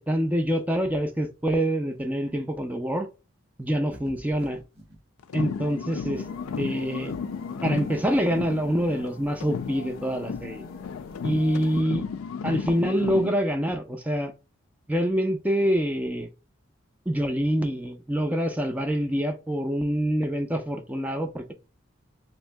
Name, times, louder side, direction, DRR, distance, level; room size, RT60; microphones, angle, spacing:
voice 1, 0.0-3.1 3.6-4.6 5.3-6.2 6.6-7.2 7.6-10.6 11.2-12.1 12.4-14.3 14.9-16.3 17.1-21.5, equal, 5° right, 0.4 m, -26 dB
sound 1, 3.9-5.0, equal, 50° right, 1.4 m, -47 dB
sound 2, 5.2-9.1 9.4-13.4, left 6 dB, 85° left, 0.4 m, -34 dB
sound 3, 6.1-11.8, left 1 dB, 45° left, 0.7 m, -46 dB
3.0 x 2.7 x 3.2 m
head